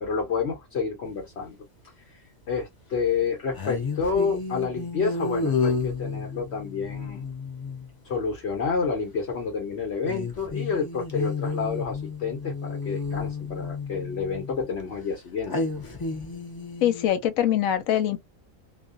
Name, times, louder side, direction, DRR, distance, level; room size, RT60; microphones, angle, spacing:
voice 1, 0.0-1.7 2.1-7.3 8.0-15.6, left 5 dB, 55° left, 1.0 m, -29 dB
sound 1, 1.1-1.2 3.5-7.9 10.1-14.7 15.5-17.1, left 4 dB, 35° left, 0.3 m, -31 dB
voice 2, 16.8-18.2, left 11 dB, 90° left, 1.0 m, -23 dB
2.4 x 2.1 x 2.4 m
omnidirectional pair, 1.4 m